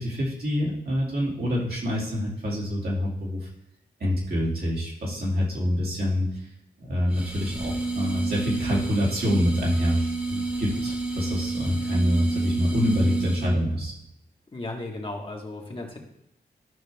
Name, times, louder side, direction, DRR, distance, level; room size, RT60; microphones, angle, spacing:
voice 1, 0.0-3.4 4.0-6.3 6.8-13.9, equal, 65° right, -4 dB, 2.6 m, -26 dB
sound 1, 7.1-13.6, right 3 dB, 10° right, 1.6 m, -30 dB
voice 2, 14.5-16.0, left 2 dB, 30° left, 0 dB, 1.6 m, -35 dB
12.5 x 5.5 x 3.6 m, 0.81 s
wide cardioid pair, 110°, 17 cm